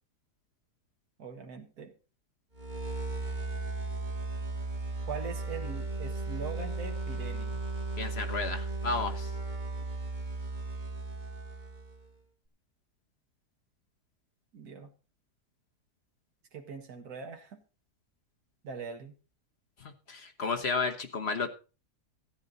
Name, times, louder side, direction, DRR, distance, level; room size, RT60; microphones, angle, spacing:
voice 1, 1.2-1.9 5.1-7.6 14.5-14.9 16.5-17.6 18.6-19.2, right 5 dB, 70° right, 3 dB, 2.0 m, -41 dB
sound 1, 2.5-12.1, right 2 dB, 30° right, 1.5 m, -36 dB
voice 2, 8.0-9.3 20.1-21.6, left 4 dB, 45° left, 5 dB, 1.3 m, -32 dB
14.0 x 9.5 x 4.0 m, 0.34 s
omnidirectional pair, 1.7 m